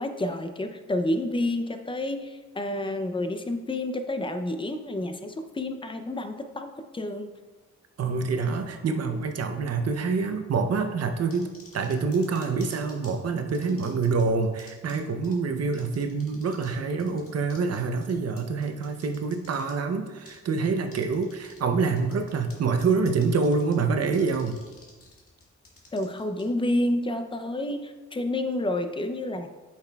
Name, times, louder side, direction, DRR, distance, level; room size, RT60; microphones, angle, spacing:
voice 1, 0.0-7.3 25.9-29.5, left 1 dB, 15° left, 7 dB, 0.5 m, -29 dB
voice 2, 8.0-24.6, right 4 dB, 60° right, 6 dB, 0.7 m, -26 dB
sound 1, 11.3-13.1 13.5-14.2 14.6-15.0 15.2-15.3 15.7-16.7 17.0-19.7 20.3-20.4 20.9-21.6 21.8-22.5 22.8-23.7 24.1-26.4, left 3 dB, 50° left, 1.7 m, -50 dB
8.9 x 5.9 x 2.3 m, 1.3 s
cardioid pair, 110°, 29 cm